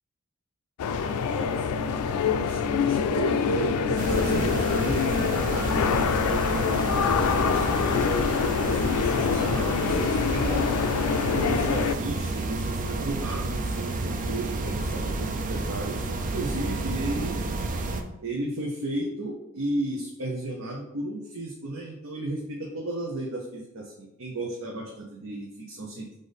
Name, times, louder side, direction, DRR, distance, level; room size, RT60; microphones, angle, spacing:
sound 1, 0.8-12.0, left 6 dB, 90° left, 0.3 m, -25 dB
voice 1, 0.9-8.2 8.6-10.7 11.3-17.4 18.2-26.2, right 2 dB, 65° right, -2 dB, 0.7 m, -34 dB
sound 2, 4.0-18.0, right 2 dB, 35° right, 0.4 m, -30 dB
5.1 x 2.6 x 4.0 m, 0.86 s
head